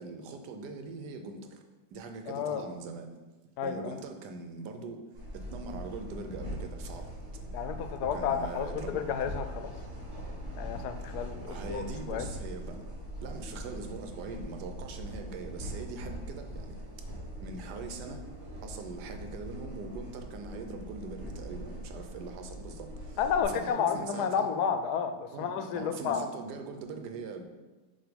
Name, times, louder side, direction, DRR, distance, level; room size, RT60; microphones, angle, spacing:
voice 1, 0.0-1.6 1.9-3.1 3.6-5.0 5.3-7.1 8.0-9.0 11.5-12.8 13.2-16.7 17.4-18.2 18.6-23.2 23.5-24.5 25.3-27.4, right 4 dB, 90° right, 5 dB, 1.3 m, -42 dB
voice 2, 2.3-2.7 3.6-3.9 7.5-9.7 10.5-11.8 12.1-12.3 23.2-26.3, left 7 dB, 80° left, 8 dB, 1.1 m, -31 dB
sound 1, 5.1-23.4, equal, 50° right, 2.4 m, -41 dB
7.6 x 2.7 x 5.1 m, 1.2 s
omnidirectional pair, 1.7 m